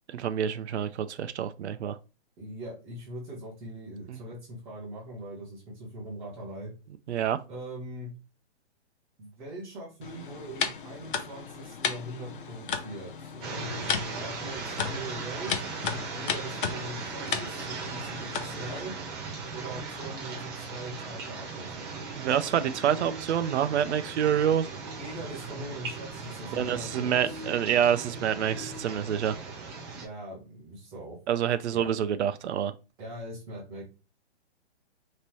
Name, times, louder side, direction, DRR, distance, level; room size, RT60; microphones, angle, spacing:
voice 1, 0.1-2.0 4.1-4.2 7.1-7.4 22.2-24.7 26.5-29.4 31.3-32.7, right 9 dB, 75° right, 0.6 m, -27 dB
voice 2, 2.4-6.7 7.5-8.1 9.2-15.6 16.1-18.9 19.5-21.9 24.7-27.4 29.9-31.2 31.7-32.0 33.0-33.8, right 1 dB, 5° right, 0.5 m, -41 dB
sound 1, 10.0-18.8, left 7 dB, 50° left, 0.7 m, -35 dB
sound 2, 13.4-30.1, right 4 dB, 25° right, 1.1 m, -38 dB
5.4 x 2.9 x 3.0 m
hypercardioid pair, 170°, 34 cm